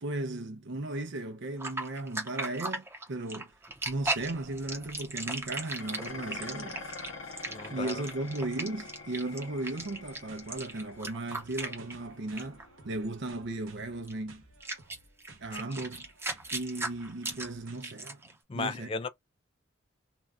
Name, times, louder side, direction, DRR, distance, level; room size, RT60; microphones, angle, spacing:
voice 1, 0.0-3.5 3.9-6.9 7.7-14.4 15.4-16.1 16.5-18.2 18.5-18.9, right 2 dB, 60° right, 0.6 m, -36 dB
sound 1, 1.6-12.1 12.4-12.6 14.1-14.2 14.6-18.3, right 2 dB, 15° right, 0.7 m, -37 dB
Dishes pots and pans, 5.8-14.6, left 3 dB, 85° left, 0.8 m, -47 dB
voice 2, 7.5-8.0 18.5-19.1, left 4 dB, 25° left, 0.3 m, -35 dB
sound 2, 9.8-17.8, right 3 dB, 80° right, 0.9 m, -56 dB
2.6 x 2.3 x 3.5 m
head